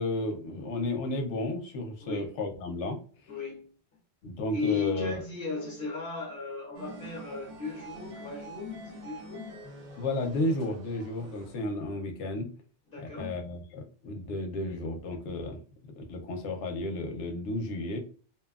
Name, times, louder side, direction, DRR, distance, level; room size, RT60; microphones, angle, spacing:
voice 1, 0.0-3.0 4.2-5.2 10.0-12.5 13.2-15.6 15.8-18.0, left 2 dB, 80° left, 0.9 m, -33 dB
voice 2, 2.0-2.3 3.3-3.7 4.5-9.6 12.9-13.4, left 4 dB, 55° left, 0.9 m, -36 dB
sound 1, 6.7-11.7, right 2 dB, 55° right, 0.9 m, -46 dB
2.9 x 2.2 x 2.3 m
omnidirectional pair, 1.2 m